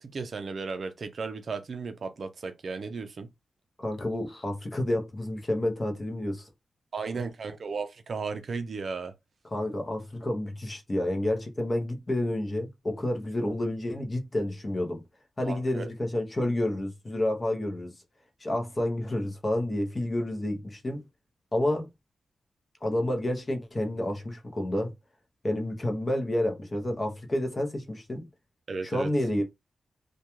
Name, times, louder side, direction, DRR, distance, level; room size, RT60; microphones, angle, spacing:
voice 1, 0.0-3.3 6.9-9.1 15.5-15.9 28.7-29.1, right 4 dB, 55° right, 0.4 m, -35 dB
voice 2, 3.8-6.5 9.4-15.0 15.4-17.9 18.4-21.1 21.5-21.9 22.8-24.9 25.4-28.3 28.8-29.4, left 1 dB, 25° left, 0.6 m, -29 dB
2.3 x 2.2 x 2.9 m
wide cardioid pair, 120°, 0 cm